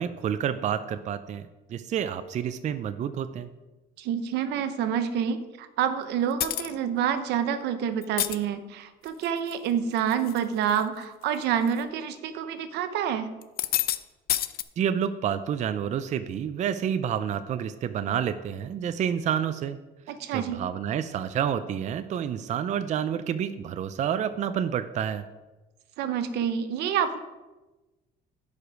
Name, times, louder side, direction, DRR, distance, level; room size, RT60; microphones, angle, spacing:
voice 1, 0.0-1.4 1.7-3.5 14.8-19.8 20.3-25.2, right 8 dB, 45° right, 11 dB, 0.5 m, -29 dB
voice 2, 4.0-13.3 20.1-20.6 26.0-27.2, right 8 dB, 85° right, 10 dB, 0.8 m, -28 dB
sound 1, 6.4-6.7 8.0-8.4 9.1-9.5 10.0-10.4 10.7-10.8 11.7-11.8 13.4-14.0 14.3-14.6, left 13 dB, 65° left, 0.5 m, -28 dB
11.0 x 5.1 x 5.0 m, 1.1 s
cardioid pair, 110°, 17 cm